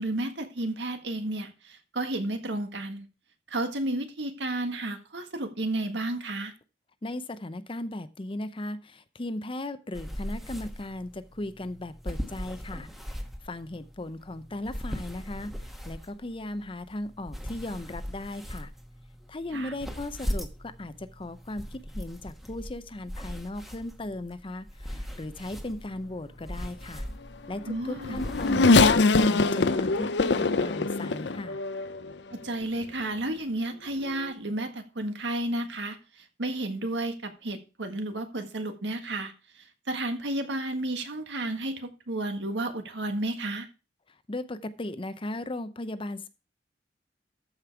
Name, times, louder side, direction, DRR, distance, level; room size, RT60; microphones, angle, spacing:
voice 1, 0.0-3.1 3.5-6.5 19.5-19.7 27.7-28.2 32.3-43.7, right 1 dB, 75° right, 7 dB, 1.6 m, -32 dB
voice 2, 7.0-13.1 13.4-15.5 15.8-18.7 19.3-27.1 27.5-31.6 44.3-46.3, left 1 dB, 30° left, 13 dB, 0.7 m, -37 dB
sound 1, 9.9-29.0, equal, ahead, 1.2 m, -39 dB
Race car auto racing / Accelerating revving vroom, 27.6-32.1 32.8-32.9 34.1-34.2, left 3 dB, 70° left, 0.6 m, -23 dB
14.0 x 5.4 x 4.7 m, 0.32 s
head